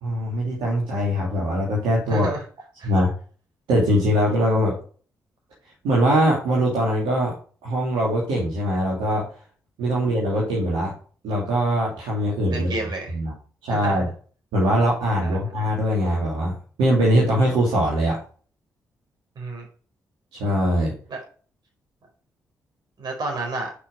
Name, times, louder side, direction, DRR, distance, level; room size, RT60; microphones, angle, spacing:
voice 1, 0.0-2.2 2.8-3.1 3.7-4.7 5.8-7.3 7.6-9.3 9.8-10.9 11.2-12.7 13.1-13.3 13.6-14.1 14.5-16.5 16.8-18.2 20.4-20.9, equal, 75° right, -5 dB, 2.9 m, -22 dB
voice 2, 2.0-2.4 2.8-2.9 9.9-10.1 12.5-13.1 13.8-13.9 15.2-15.4 19.4-19.7 21.1-21.2 23.0-23.7, right 2 dB, 60° right, 1 dB, 4.4 m, -30 dB
8.3 x 5.9 x 4.9 m, 0.41 s
hypercardioid pair, 40°, 8 cm